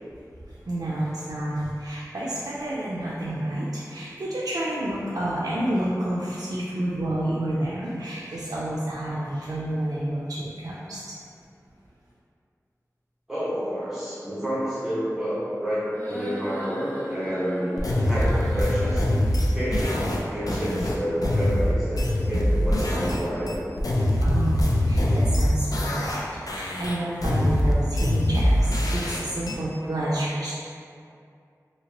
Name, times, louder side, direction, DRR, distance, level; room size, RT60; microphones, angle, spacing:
voice 1, 0.5-11.2 24.2-30.5, right 1 dB, 75° right, -7 dB, 0.4 m, -29 dB
voice 2, 13.3-19.1 19.5-19.9 20.3-23.7, equal, 5° right, -12 dB, 1.3 m, -29 dB
sound 1, 15.9-19.0, equal, 30° left, 0.7 m, -36 dB
sound 2, 17.8-23.2 23.5-26.2 26.5-29.5, left 1 dB, 75° left, 0.4 m, -23 dB
2.9 x 2.8 x 2.8 m, 2.4 s
wide cardioid pair, 60°, 6 cm